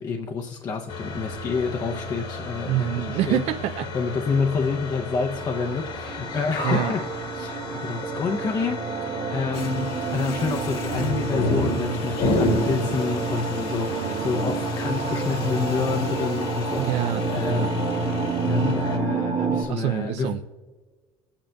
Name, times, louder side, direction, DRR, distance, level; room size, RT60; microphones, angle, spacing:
voice 1, 0.0-3.4 3.9-8.9 9.3-20.3, left 5 dB, 35° left, 4 dB, 0.6 m, -28 dB
sound 1, 0.9-19.0, left 2 dB, 85° left, 2.2 m, -32 dB
voice 2, 2.7-3.9 6.6-6.9 13.9-14.7 16.8-17.7 19.7-20.4, right 13 dB, 80° right, 8 dB, 0.4 m, -27 dB
sound 2, 5.3-19.6, right 3 dB, 45° right, 1.2 m, -29 dB
sound 3, 9.5-18.7, left 6 dB, 60° left, 1.2 m, -42 dB
24.5 x 8.7 x 2.3 m, 1.4 s
cardioid pair, 145°, 11 cm